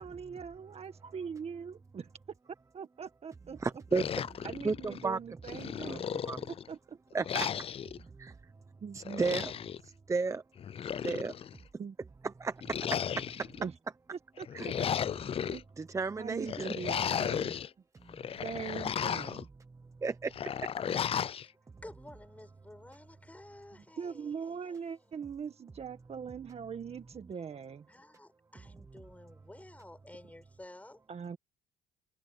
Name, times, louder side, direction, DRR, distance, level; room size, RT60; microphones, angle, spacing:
voice 1, 0.0-2.1 2.7-3.6 4.4-6.1 6.5-7.0 8.8-9.2 11.8-12.0 13.6-13.7 14.1-14.7 15.4-15.6 16.2-17.5 18.4-19.5 20.9-21.0 24.0-27.9 31.1-31.4, right 6 dB, 35° right, 1.8 m, -41 dB
voice 2, 3.6-4.1 4.4-5.2 5.9-6.0 6.2-6.5 7.1-7.5 8.2-8.3 8.9-9.5 9.8-10.4 11.0-11.3 12.4-13.6 14.5-14.7 15.8-16.7 18.0-18.2 20.0-20.3, right 4 dB, 20° right, 0.9 m, -33 dB
sound 1, 3.9-5.1 5.5-6.7 7.2-8.0 9.0-9.8 10.6-11.6 12.6-13.6 14.4-15.6 16.5-17.7 18.1-19.4 20.3-21.5, left 8 dB, 35° left, 0.5 m, -35 dB
voice 3, 21.8-25.2 27.9-31.0, left 1 dB, 10° left, 7.5 m, -52 dB
cardioid pair, 110°, 17 cm